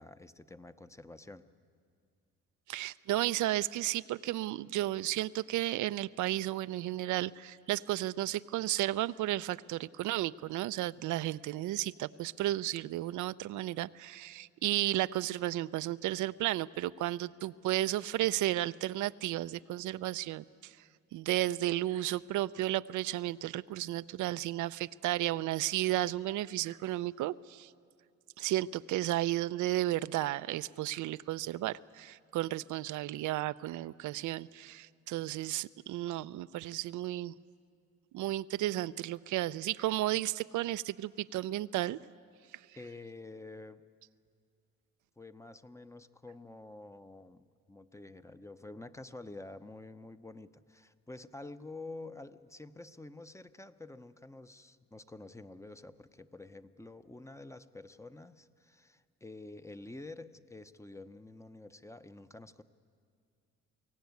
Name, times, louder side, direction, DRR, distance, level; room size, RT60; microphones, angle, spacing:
voice 1, 0.0-1.5 42.7-43.8 45.2-62.6, left 2 dB, 10° left, 11 dB, 0.7 m, -49 dB
voice 2, 2.7-20.8 21.1-27.7 28.4-37.3 38.1-42.0 42.5-42.6, right 15 dB, 80° right, 14 dB, 0.5 m, -33 dB
23.5 x 16.5 x 9.4 m, 2.2 s
cardioid pair, 90°, 30 cm